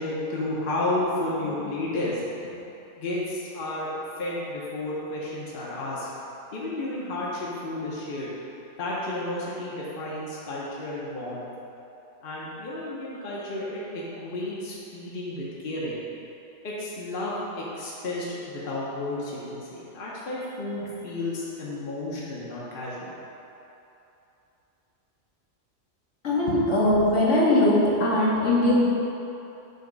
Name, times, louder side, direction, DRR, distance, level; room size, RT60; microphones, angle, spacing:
voice 1, 0.0-2.5 3.0-6.1 6.5-8.3 8.8-11.4 12.2-16.0 16.6-23.1 26.5-26.6, left 1 dB, 50° left, -6 dB, 1.0 m, -32 dB
voice 2, 26.2-28.9, left 1 dB, 70° left, -7 dB, 1.6 m, -20 dB
7.8 x 2.9 x 5.2 m, 3.0 s
omnidirectional pair, 1.3 m